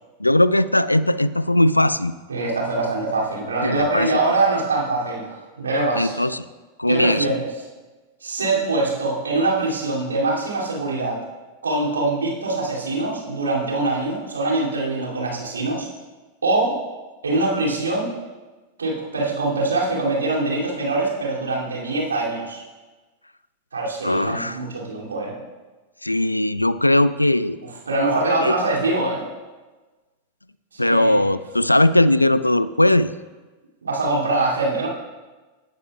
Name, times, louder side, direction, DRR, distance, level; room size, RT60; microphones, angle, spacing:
voice 1, 0.2-2.1 3.6-4.1 5.9-6.5 6.8-7.3 24.0-24.6 26.0-27.6 28.4-28.5 30.8-33.1, left 1 dB, 85° left, 16 dB, 0.3 m, -19 dB
voice 2, 2.3-6.2 6.9-7.5 8.2-11.2 11.6-15.9 16.4-16.8 17.2-18.1 18.8-22.6 23.7-25.4 27.9-29.2 30.7-31.2 33.8-34.9, right 2 dB, 75° right, -4 dB, 2.6 m, -23 dB
17.5 x 9.6 x 2.3 m, 1.2 s
figure-of-eight pair, 90°, 0 cm